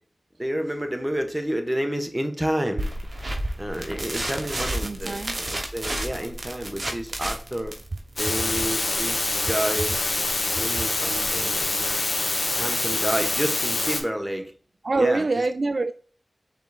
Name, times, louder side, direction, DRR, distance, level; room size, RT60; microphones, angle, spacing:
voice 1, 0.4-2.9 3.6-7.8 8.2-10.0 10.5-12.2 12.5-14.5 14.9-15.4, equal, 10° right, 1.2 m, -30 dB
sound 1, 2.8-11.9, right 1 dB, 50° right, 1.2 m, -32 dB
voice 2, 4.8-5.4 14.8-15.9, right 3 dB, 65° right, 0.4 m, -25 dB
rotosource general sonic, 8.2-14.0, left 2 dB, 65° left, 1.4 m, -25 dB
5.5 x 4.0 x 2.4 m
cardioid pair, 45°, 0 cm